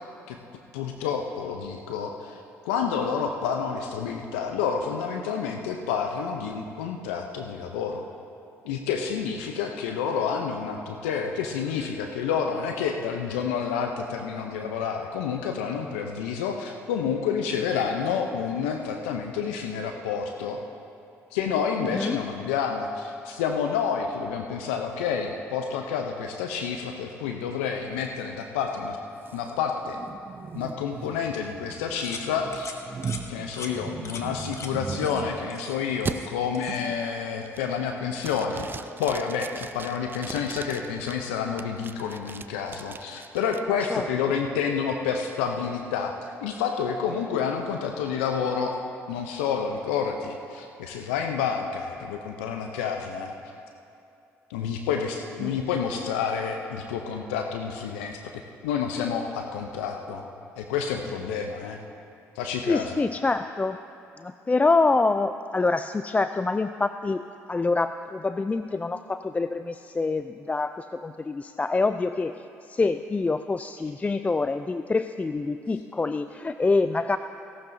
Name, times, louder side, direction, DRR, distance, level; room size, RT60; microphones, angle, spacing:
voice 1, 0.7-8.1 8.6-20.6 21.3-29.0 29.3-30.0 30.5-32.7 33.3-38.7 39.0-46.1 46.4-48.7 49.1-53.3 54.5-58.2 58.6-60.3 60.6-61.8 62.4-63.0, left 6 dB, 90° left, 4 dB, 0.6 m, -29 dB
voice 2, 21.8-22.2 43.9-44.0 55.4-55.5 62.7-63.8 64.2-67.2 67.5-72.3 72.7-77.2, left 3 dB, 20° left, 10 dB, 0.3 m, -26 dB
sound 1, 29.2-35.6 36.1-36.2 36.7-37.0 37.4-37.8 38.2-41.1 41.6-43.6, right 5 dB, 35° right, 0.5 m, -38 dB
sound 2, 32.0-32.3 32.5-32.8 33.0-33.2 33.5-33.7 34.0-34.2 34.5-34.7 35.0-35.2 35.5-36.3 36.5-36.8, left 5 dB, 45° left, 1.2 m, -40 dB
17.0 x 12.0 x 2.7 m, 2.6 s
hypercardioid pair, 60°, 7 cm